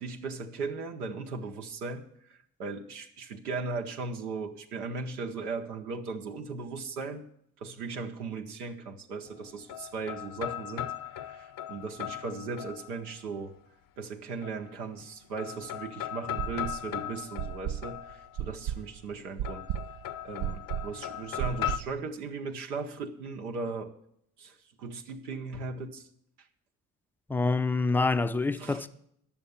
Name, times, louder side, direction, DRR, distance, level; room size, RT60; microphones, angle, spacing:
voice 1, 0.0-7.2 7.6-13.5 14.0-19.6 20.2-23.9 24.4-26.1 28.6-28.8, right 4 dB, 85° right, 0.7 m, -37 dB
sound 1, 9.3-13.2 14.4-15.1 15.4-18.6 19.4-21.8, left 12 dB, 50° left, 0.6 m, -38 dB
sound 2, 16.4-16.9 17.4-22.0, right 11 dB, 55° right, 0.5 m, -35 dB
voice 2, 27.3-28.9, left 3 dB, 5° left, 0.4 m, -26 dB
10.0 x 6.9 x 8.4 m
figure-of-eight pair, 40°, 45 cm